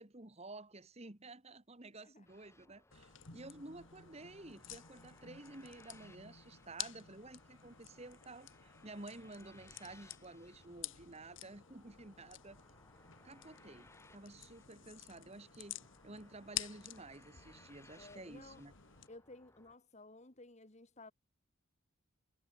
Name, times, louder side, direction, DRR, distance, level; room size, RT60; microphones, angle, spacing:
voice 1, 0.0-12.6 13.2-15.8 16.0-18.7, right 2 dB, 30° right, 1.6 m, -52 dB
sound 1, 2.2-19.8, left 2 dB, 15° left, 4.6 m, -65 dB
sound 2, 2.9-19.1, left 12 dB, 65° left, 2.1 m, -51 dB
voice 2, 18.0-18.6 19.1-21.1, left 2 dB, 35° left, 1.7 m, -55 dB
head